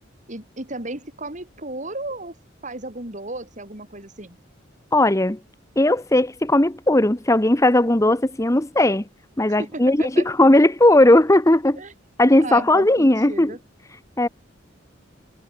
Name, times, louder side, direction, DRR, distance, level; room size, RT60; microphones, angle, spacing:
voice 1, 0.3-2.4 2.6-4.4 9.5-10.3 11.8-11.9 12.4-13.6, right 2 dB, 40° right, 5.2 m, -34 dB
voice 2, 4.9-5.4 5.8-9.0 9.4-10.0 10.2-11.8 12.2-13.5 14.2-14.3, left 1 dB, 15° left, 1.0 m, -17 dB
head